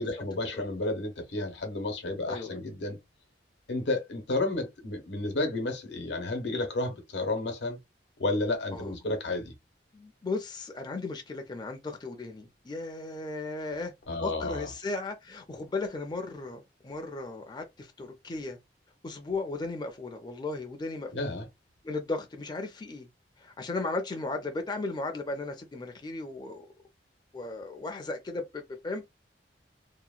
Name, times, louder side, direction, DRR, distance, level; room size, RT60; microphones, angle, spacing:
voice 1, 0.0-3.0 3.7-7.8 8.2-9.5 14.1-14.7 21.1-21.5, left 2 dB, 80° left, 0.8 m, -31 dB
voice 2, 2.3-2.6 8.7-8.9 9.9-13.9 14.2-18.6 19.0-21.1 21.8-23.1 23.4-26.7 27.3-29.0, left 3 dB, 25° left, 0.4 m, -36 dB
2.8 x 2.1 x 2.4 m
head